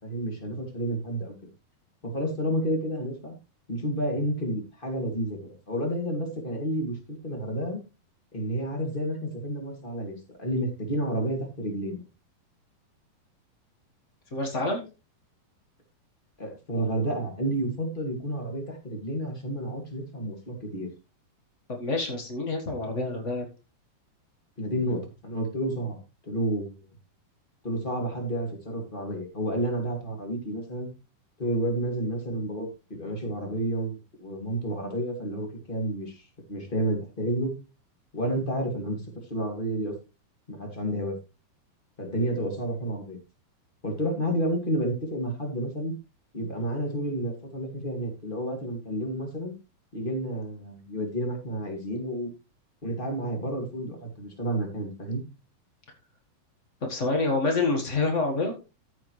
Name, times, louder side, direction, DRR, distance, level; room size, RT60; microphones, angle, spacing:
voice 1, 0.0-1.3 2.0-3.3 3.7-7.0 7.2-7.8 8.3-12.0 16.4-20.9 24.6-26.0 26.2-26.9 27.6-30.9 31.4-37.5 38.1-39.9 40.5-41.2 42.0-43.2 43.8-46.0 46.3-49.5 49.9-52.3 52.8-55.2, right 1 dB, 20° left, 2 dB, 1.9 m, -30 dB
voice 2, 14.3-14.8 21.8-23.5 56.8-58.5, left 3 dB, 85° left, 2 dB, 0.6 m, -27 dB
14.0 x 6.8 x 3.2 m, 0.29 s
omnidirectional pair, 4.2 m